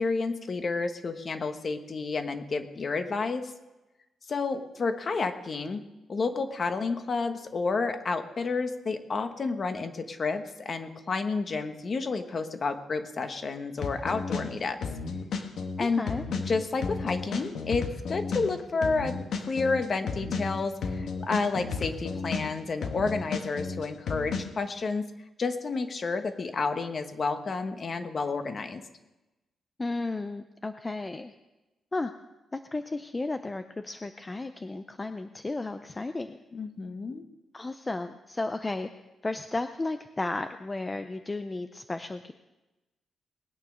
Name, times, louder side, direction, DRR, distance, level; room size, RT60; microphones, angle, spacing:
voice 1, 0.0-3.5 4.3-5.8 6.1-14.8 15.8-16.0 16.5-25.1 25.4-28.8 36.5-37.2, left 4 dB, 35° left, 8 dB, 1.2 m, -30 dB
sound 1, 13.8-14.5 14.8-18.5 18.8-22.5 22.8-24.4, left 4 dB, 70° left, 1.6 m, -33 dB
voice 2, 15.8-16.2 29.8-31.3 31.9-32.1 32.5-36.4 37.5-38.9 39.2-42.3, left 2 dB, 20° left, 8 dB, 0.5 m, -34 dB
20.0 x 9.3 x 6.3 m, 1.0 s
wide cardioid pair, 150°, 0 cm